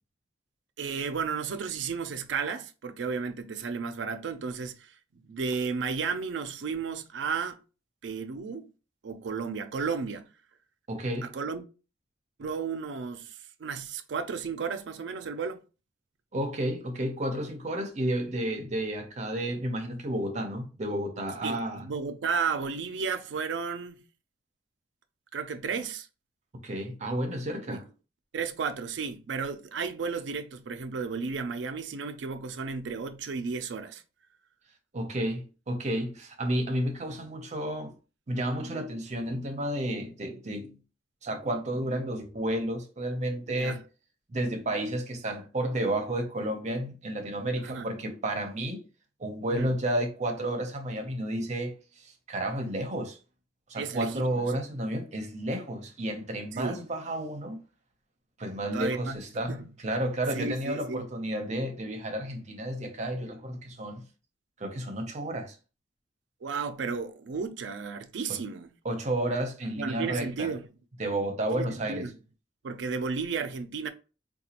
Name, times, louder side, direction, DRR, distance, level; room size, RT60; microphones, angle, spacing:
voice 1, 0.8-5.0 5.2-7.6 8.0-8.7 9.0-10.3 11.2-11.6 12.4-15.6 21.4-24.0 25.3-26.1 27.7-27.8 28.3-34.0 43.5-43.8 47.6-47.9 49.5-49.7 53.8-54.5 56.5-56.8 58.7-59.7 60.3-61.1 66.4-68.7 69.8-70.7 71.5-72.1 72.6-73.9, right 5 dB, 75° right, 0.4 m, -33 dB
voice 2, 10.9-11.3 16.3-21.8 26.6-27.8 34.9-37.9 38.3-40.8 41.2-43.8 44.3-48.8 49.2-51.7 52.0-53.2 53.7-57.6 58.4-59.5 59.8-64.0 64.6-65.6 68.8-70.5 71.0-72.1, right 1 dB, 40° right, 0.7 m, -31 dB
4.0 x 2.3 x 2.8 m
head